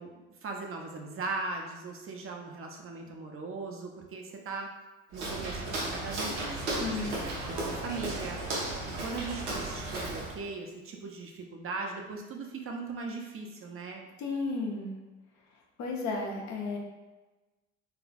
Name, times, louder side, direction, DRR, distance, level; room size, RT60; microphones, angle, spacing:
voice 1, 0.0-4.7 5.1-14.0, right 3 dB, 40° right, 1 dB, 0.6 m, -39 dB
Walk footsteps, 5.1-10.4, right 2 dB, 85° right, 0.8 m, -35 dB
voice 2, 6.8-7.1 14.2-14.9 15.8-16.8, left 3 dB, 55° left, -1 dB, 0.8 m, -33 dB
3.6 x 3.2 x 2.3 m, 1.2 s
hypercardioid pair, 50°, 34 cm